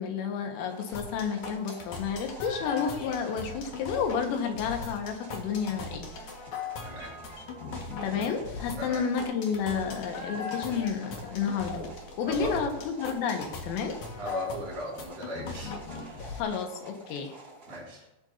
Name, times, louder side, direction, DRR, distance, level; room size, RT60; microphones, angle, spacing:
voice 1, 0.0-6.1 8.0-11.8 12.2-14.0 16.4-17.4, left 6 dB, 90° left, 4 dB, 4.1 m, -31 dB
sound 1, 0.6-17.8, right 2 dB, 20° right, 4.1 m, -50 dB
sound 2, 0.9-16.4, left 4 dB, 60° left, 2.1 m, -39 dB
voice 2, 6.8-7.1 8.8-9.1 12.2-12.6 14.1-16.2 17.7-18.1, equal, 40° right, -5 dB, 4.7 m, -38 dB
19.0 x 9.0 x 2.8 m, 0.96 s
omnidirectional pair, 5.7 m